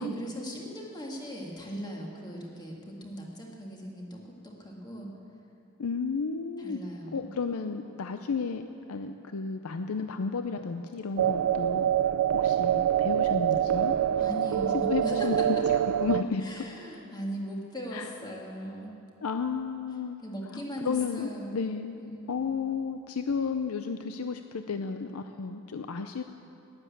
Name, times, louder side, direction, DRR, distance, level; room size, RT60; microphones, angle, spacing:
voice 1, 0.0-5.1 6.6-7.3 14.2-15.5 16.4-19.0 20.2-21.6 22.0-22.3, equal, 20° left, -1 dB, 1.9 m, -39 dB
voice 2, 5.8-6.8 7.1-13.9 14.9-15.4 15.7-16.6 17.9-18.1 19.2-20.2 20.5-22.0 22.3-26.2, left 5 dB, 85° left, 8 dB, 0.5 m, -33 dB
sound 1, 11.2-16.2, right 10 dB, 90° right, 0.4 m, -25 dB
12.0 x 10.5 x 8.6 m, 2.7 s
head